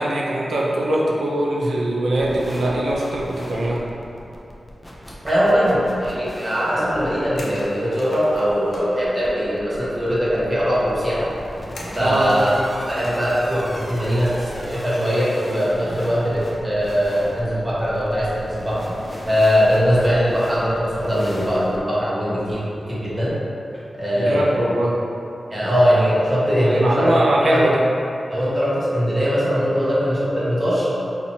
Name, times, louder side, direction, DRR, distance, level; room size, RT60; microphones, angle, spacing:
voice 1, 0.0-3.8 12.0-12.6 24.1-25.0 26.7-27.8, right 1 dB, 75° right, -3 dB, 0.5 m, -21 dB
sound 1, 2.1-21.8, equal, 15° left, 0.4 m, -37 dB
voice 2, 5.2-11.3 11.9-12.6 12.9-18.8 19.3-22.6 22.9-23.4 23.9-24.7 25.5-27.6 28.3-30.9, equal, 20° right, -8 dB, 0.8 m, -21 dB
sound 2, 7.4-9.0 11.7-13.4 13.7-13.8 15.4-15.7, left 1 dB, 90° left, 0.5 m, -37 dB
4.2 x 2.9 x 2.7 m, 2.8 s
wide cardioid pair, 160°, 0 cm